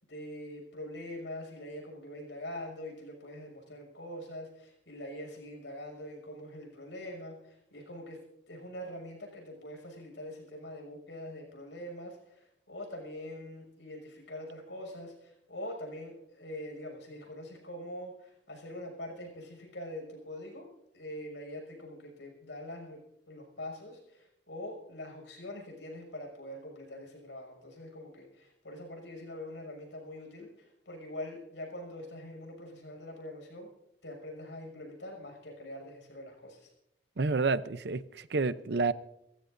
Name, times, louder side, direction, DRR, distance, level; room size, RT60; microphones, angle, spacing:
voice 1, 0.1-8.2 8.5-20.7 20.9-23.0 23.3-33.7 34.0-36.7, left 1 dB, 80° left, 6.4 m, -44 dB
voice 2, 37.2-38.9, right 3 dB, 70° right, 0.6 m, -29 dB
28.5 x 15.0 x 2.6 m
head